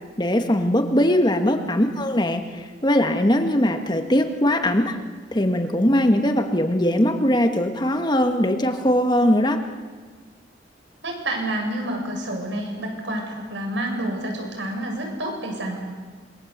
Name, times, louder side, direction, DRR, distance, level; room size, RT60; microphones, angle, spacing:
voice 1, 0.2-5.0 5.3-9.6, left 1 dB, 25° left, 6 dB, 1.7 m, -20 dB
voice 2, 11.0-15.8, right 1 dB, 85° right, 2 dB, 7.5 m, -28 dB
26.5 x 24.0 x 8.1 m, 1.5 s
head